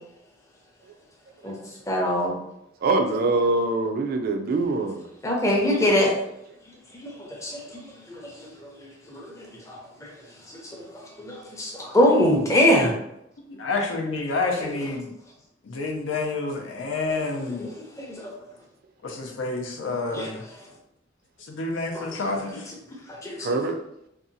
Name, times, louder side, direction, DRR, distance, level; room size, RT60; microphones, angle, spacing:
voice 1, 1.9-2.4 5.2-6.2 7.2-7.6 8.1-8.3 8.6-8.7 9.1-10.1 10.5-10.8 11.2-12.9 17.6-17.7 18.0-18.3 20.1-20.3 23.2-23.5, left 1 dB, 15° left, -1 dB, 0.5 m, -23 dB
voice 2, 2.8-5.1 23.4-23.8, right 3 dB, 50° right, 5 dB, 0.3 m, -24 dB
voice 3, 13.5-15.1 15.6-17.7 19.0-20.5 21.4-22.7, left 3 dB, 90° left, 1 dB, 0.5 m, -29 dB
2.7 x 2.2 x 2.6 m, 0.81 s
head